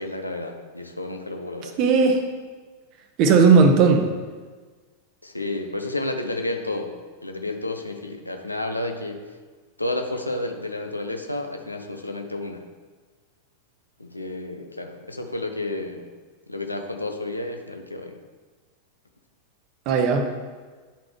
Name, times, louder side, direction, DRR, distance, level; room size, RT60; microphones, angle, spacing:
voice 1, 0.0-1.8 5.2-6.9 7.2-9.2 9.8-12.6 14.0-16.0 16.5-18.2, left 2 dB, 85° left, 5 dB, 0.6 m, -31 dB
voice 2, 1.6-2.2 3.2-4.1 19.9-20.5, right 5 dB, 40° right, 6 dB, 0.7 m, -17 dB
10.0 x 4.0 x 3.1 m, 1.4 s
figure-of-eight pair, 90°, 0 cm